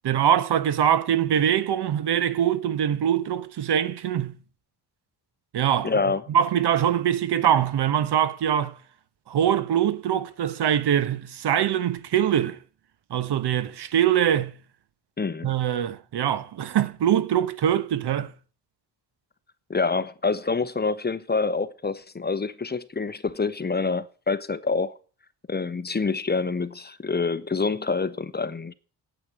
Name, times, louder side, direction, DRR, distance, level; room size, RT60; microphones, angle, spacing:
voice 1, 0.0-4.4 5.5-5.9 6.3-8.8 9.3-12.6 13.1-14.6 15.4-18.3, right 9 dB, 75° right, 1.2 m, -23 dB
voice 2, 5.8-6.2 15.2-15.5 19.7-24.9 25.5-28.7, left 4 dB, 25° left, 0.9 m, -26 dB
8.8 x 8.4 x 9.4 m
cardioid pair, 90°, 41 cm